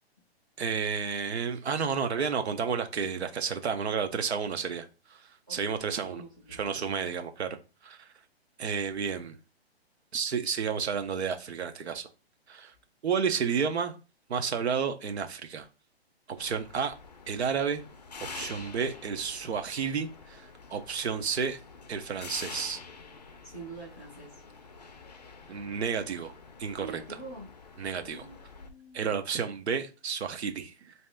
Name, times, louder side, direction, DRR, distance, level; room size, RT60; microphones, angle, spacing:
voice 1, 0.6-6.2 6.5-7.6 7.8-8.1 8.6-9.4 10.1-12.1 12.5-12.7 13.0-14.0 14.3-15.7 16.3-16.9 17.3-17.8 18.3-21.6 21.9-22.8 25.5-26.3 26.6-27.0 27.8-28.3 28.9-30.9, right 6 dB, 75° right, 7 dB, 0.7 m, -31 dB
voice 2, 6.0-6.9 23.4-24.4 26.8-27.5 27.9-29.0, right 3 dB, 20° right, -3 dB, 0.6 m, -45 dB
sound 1, 16.4-28.7, left 4 dB, 40° left, 0.4 m, -47 dB
3.1 x 2.8 x 3.4 m, 0.32 s
hypercardioid pair, 175°, 33 cm